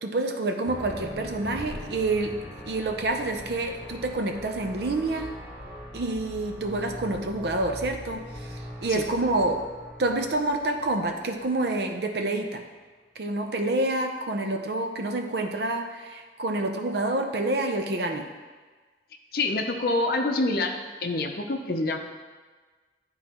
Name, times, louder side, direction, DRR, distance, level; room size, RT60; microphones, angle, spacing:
voice 1, 0.0-2.4 2.6-5.3 5.9-9.6 10.0-12.6 13.2-18.3, right 2 dB, 65° right, 5 dB, 0.6 m, -28 dB
sound 1, 0.7-11.9, left 1 dB, 30° left, 1.7 m, -41 dB
voice 2, 19.3-20.7 21.0-22.0, left 2 dB, 55° left, 4 dB, 0.6 m, -26 dB
10.5 x 3.9 x 3.0 m, 1.4 s
head